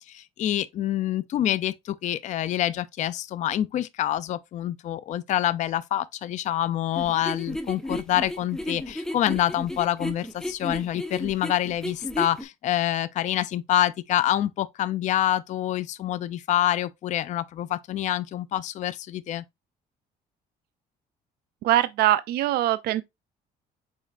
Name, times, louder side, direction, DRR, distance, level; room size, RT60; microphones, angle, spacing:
voice 1, 0.1-19.4, left 12 dB, 45° left, 0.4 m, -26 dB
sound 1, 7.0-12.4, left 1 dB, 5° left, 0.8 m, -33 dB
voice 2, 21.6-23.0, right 14 dB, 70° right, 0.4 m, -22 dB
4.8 x 4.1 x 2.4 m
cardioid pair, 110°, 17 cm